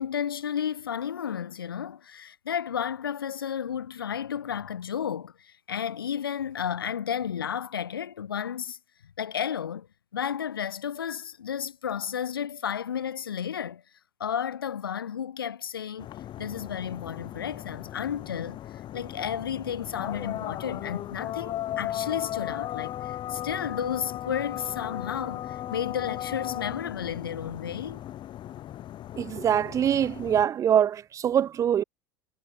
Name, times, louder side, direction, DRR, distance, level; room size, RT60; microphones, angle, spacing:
voice 1, 0.0-8.8 9.2-9.9 10.1-13.8 14.2-16.1 16.4-28.0, left 8 dB, 90° left, 1.8 m, -32 dB
sound 1, 16.0-30.5, left 12 dB, 45° left, 5.4 m, -36 dB
voice 2, 29.2-31.8, right 9 dB, 30° right, 0.3 m, -24 dB
hypercardioid pair, 90°, 12 cm